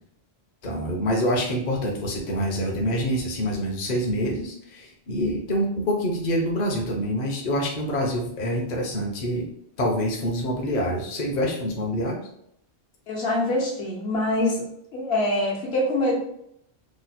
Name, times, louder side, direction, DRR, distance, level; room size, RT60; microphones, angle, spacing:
voice 1, 0.6-9.5 9.8-12.2, equal, 50° left, -1 dB, 0.7 m, -26 dB
voice 2, 13.1-14.7 14.9-16.3, left 1 dB, 70° left, -2 dB, 1.1 m, -24 dB
3.0 x 2.1 x 4.0 m, 0.74 s
omnidirectional pair, 1.1 m